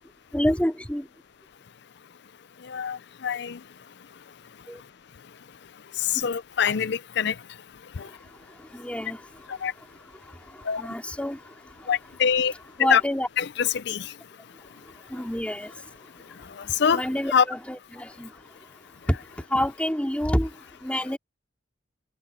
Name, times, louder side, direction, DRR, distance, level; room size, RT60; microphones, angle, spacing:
voice 1, 0.3-1.0 4.7-4.8 8.7-9.2 10.8-11.4 12.8-13.3 15.1-15.7 16.9-18.3 19.1-19.2 19.5-20.5 20.8-21.2, equal, 5° left, 2.6 m, -27 dB
voice 2, 2.6-3.6 5.9-7.4 8.0-8.1 9.5-9.7 10.6-10.8 11.9-12.5 12.8-13.0 13.4-14.1 16.4-17.0 17.3-17.4, left 7 dB, 60° left, 0.5 m, -24 dB
head